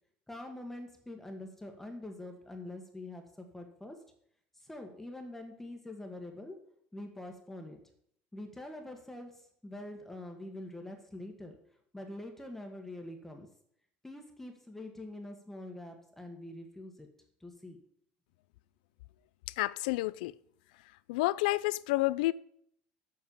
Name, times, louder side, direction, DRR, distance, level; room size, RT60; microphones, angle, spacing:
voice 1, 0.3-4.0 4.5-6.6 6.9-7.8 8.3-11.6 11.9-13.5 14.0-17.1 17.4-17.8, left 1 dB, 5° left, 1.5 m, -45 dB
voice 2, 19.5-20.3 21.1-22.3, left 19 dB, 85° left, 0.4 m, -29 dB
7.5 x 6.4 x 7.1 m
supercardioid pair, 110°, 5 cm